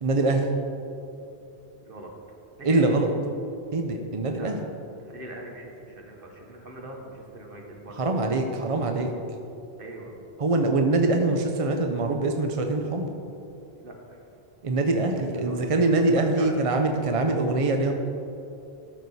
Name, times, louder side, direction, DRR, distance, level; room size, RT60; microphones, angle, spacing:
voice 1, 0.0-0.5 2.6-3.1 3.7-4.6 8.0-9.1 10.4-13.1 14.6-17.9, right 2 dB, 40° right, 4 dB, 0.6 m, -23 dB
voice 2, 2.6-2.9 4.3-4.5 5.0-8.1 9.8-10.1 13.7-14.2 15.3-16.5, right 1 dB, 55° right, 1 dB, 1.5 m, -41 dB
13.0 x 6.6 x 4.1 m, 2.7 s
omnidirectional pair, 1.1 m